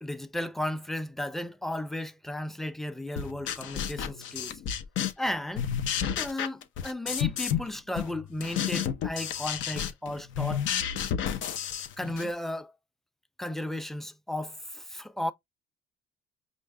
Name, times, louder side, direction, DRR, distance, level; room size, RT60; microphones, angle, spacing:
voice 1, 0.0-4.6 5.2-5.7 6.1-10.7 12.0-12.7 13.4-15.3, left 1 dB, ahead, 0.6 m, -34 dB
sound 1, 3.2-5.3 5.5-7.7 8.0-12.3, left 9 dB, 70° left, 0.8 m, -31 dB
5.1 x 2.6 x 3.4 m
supercardioid pair, 80°, 20 cm